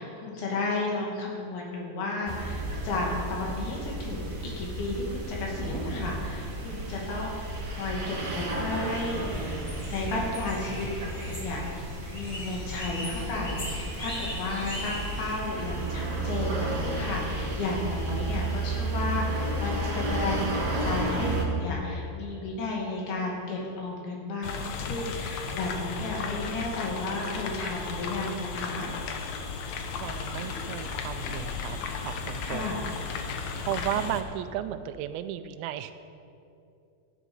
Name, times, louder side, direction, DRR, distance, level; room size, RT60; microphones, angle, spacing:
voice 1, 0.0-7.4 7.6-11.9 12.1-28.9 32.4-32.8, left 2 dB, 85° left, -2 dB, 4.3 m, -33 dB
sound 1, 2.3-21.4, right 1 dB, 40° right, 1.2 m, -33 dB
sound 2, 8.5-15.4, left 1 dB, 30° left, 0.8 m, -39 dB
sound 3, 24.4-34.2, left 5 dB, 65° left, 1.9 m, -35 dB
voice 2, 29.9-31.8 32.0-32.8 33.7-35.9, right 11 dB, 85° right, 11 dB, 2.4 m, -34 dB
14.0 x 11.0 x 5.4 m, 2.6 s
omnidirectional pair, 4.3 m